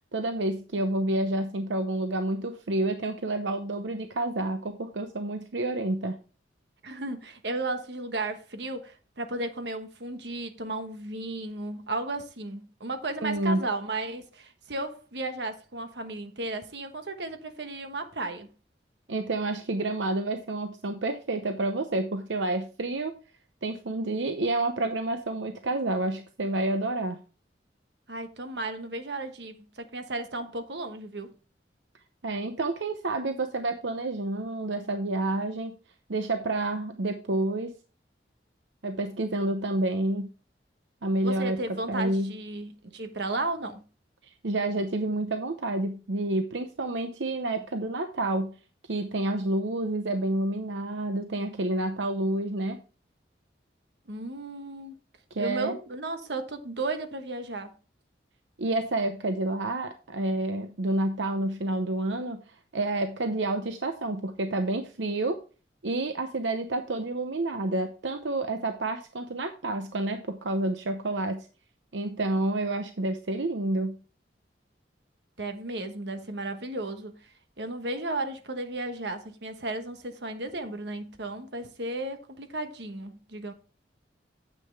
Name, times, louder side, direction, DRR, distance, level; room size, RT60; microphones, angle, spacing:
voice 1, 0.1-6.2 13.2-13.6 19.1-23.1 23.6-27.2 32.2-35.7 36.1-37.7 38.8-40.3 41.0-42.3 44.4-48.6 48.9-52.8 55.3-55.8 58.6-62.4 62.7-65.4 65.8-71.5 71.9-74.0, right 2 dB, 85° right, 0.8 m, -29 dB
voice 2, 6.8-18.5 28.1-31.3 41.2-43.8 54.1-54.9 55.4-57.7 75.4-77.1 77.6-83.5, right 2 dB, 70° right, 1.3 m, -34 dB
9.7 x 7.7 x 3.4 m
head